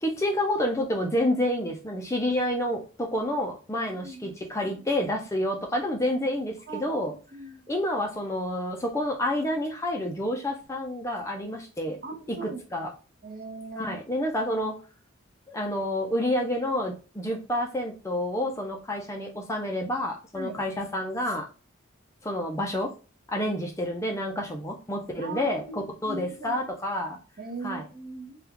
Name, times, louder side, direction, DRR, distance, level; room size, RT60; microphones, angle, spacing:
voice 1, 0.0-7.1 7.7-12.0 12.4-12.9 13.8-14.8 15.5-21.5 22.2-22.9 23.3-27.2 27.6-27.8, left 1 dB, 15° left, 1 dB, 0.4 m, -29 dB
voice 2, 4.0-4.3 4.7-5.1 6.7-7.0 7.3-7.7 12.0-12.6 13.2-13.9 20.3-20.6 25.2-26.6 27.4-28.4, right 3 dB, 40° right, 3 dB, 0.7 m, -39 dB
3.4 x 2.3 x 2.9 m, 0.35 s
head